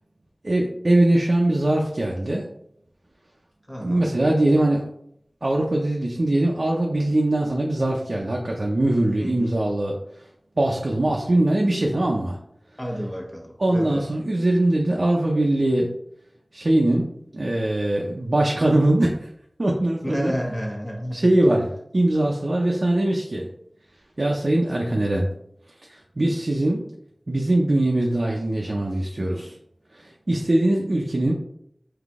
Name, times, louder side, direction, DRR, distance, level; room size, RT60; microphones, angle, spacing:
voice 1, 0.4-2.5 3.8-4.9 5.4-10.0 10.6-12.4 13.6-15.9 16.5-19.3 19.6-20.3 21.1-21.7 21.9-23.5 24.2-25.3 25.9-26.8 27.3-29.6 29.9-31.3, right 1 dB, 65° right, -1 dB, 0.6 m, -21 dB
voice 2, 3.7-4.1 9.2-9.6 12.8-14.1 20.0-21.3, equal, 15° left, -1 dB, 1.1 m, -31 dB
3.9 x 2.8 x 3.5 m, 0.73 s
wide cardioid pair, 40°, 0 cm